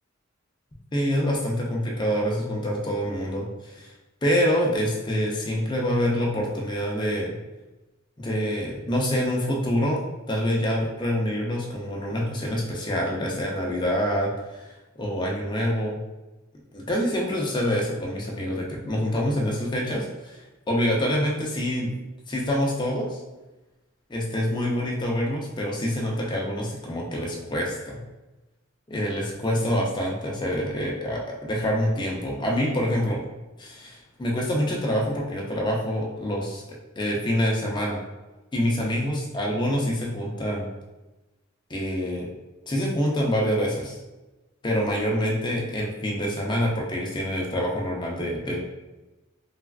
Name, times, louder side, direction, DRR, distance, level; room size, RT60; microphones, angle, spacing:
voice 1, 0.9-3.9 4.2-7.3 8.2-10.0 10.3-14.7 15.0-16.0 16.7-20.4 20.7-21.9 22.3-23.2 24.1-28.0 28.9-33.2 33.6-36.6 37.0-38.0 38.5-40.7 41.7-42.3 42.7-44.0 44.6-48.6, equal, 20° left, -2 dB, 0.5 m, -26 dB
3.3 x 2.3 x 2.3 m, 1.1 s
head